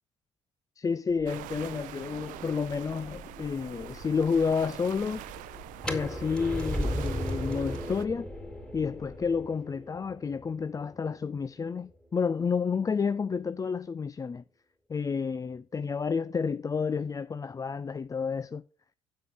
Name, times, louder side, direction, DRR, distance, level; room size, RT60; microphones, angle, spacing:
voice 1, 0.8-5.2 5.9-8.3 8.7-14.4 14.9-18.6, left 5 dB, 25° left, 0.4 m, -30 dB
sound 1, 1.1-9.4, left 1 dB, 45° left, 2.9 m, -49 dB
sound 2, 1.3-8.1, right 14 dB, 65° right, 0.6 m, -44 dB
sound 3, 5.8-11.6, equal, 5° left, 3.0 m, -36 dB
7.6 x 6.6 x 7.6 m
figure-of-eight pair, 50°, 15 cm